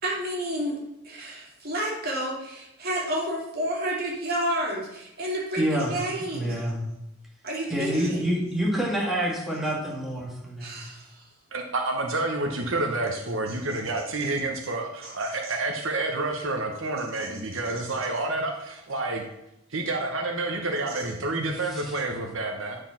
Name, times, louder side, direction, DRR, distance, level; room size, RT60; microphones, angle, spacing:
voice 1, 0.0-0.8 1.0-6.7 7.4-8.4 10.6-11.2 13.5-13.6 15.0-15.5 17.2-17.4 17.6-17.7 20.9-21.1, right 1 dB, 50° right, -2 dB, 2.7 m, -31 dB
voice 2, 5.6-5.9 6.3-6.8 7.7-10.8 21.7-22.0, equal, ahead, -4 dB, 2.0 m, -27 dB
voice 3, 11.5-19.2 19.7-22.8, right 2 dB, 75° right, 2 dB, 1.1 m, -29 dB
9.5 x 4.8 x 5.8 m, 0.88 s
head